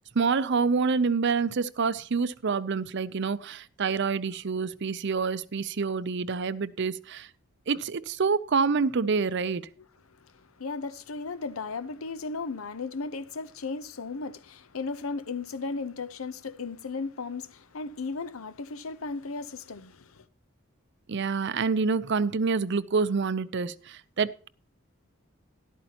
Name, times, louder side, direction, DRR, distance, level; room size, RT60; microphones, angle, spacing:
voice 1, 0.2-7.3 7.7-9.7 21.1-24.5, right 5 dB, 55° right, 0.6 m, -27 dB
voice 2, 10.2-20.2, left 4 dB, 85° left, 0.8 m, -36 dB
13.0 x 12.0 x 2.9 m
head